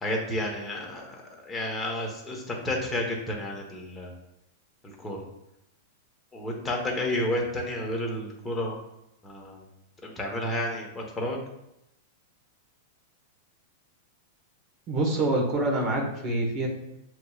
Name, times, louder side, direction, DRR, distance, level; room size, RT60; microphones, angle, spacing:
voice 1, 0.0-4.1 4.8-5.2 6.3-8.8 9.2-9.6 10.0-11.4, left 1 dB, 15° left, -1 dB, 1.1 m, -31 dB
voice 2, 14.9-16.7, right 2 dB, 40° right, 1 dB, 1.2 m, -26 dB
6.8 x 3.0 x 2.4 m, 0.86 s
hypercardioid pair, 125°, 0 cm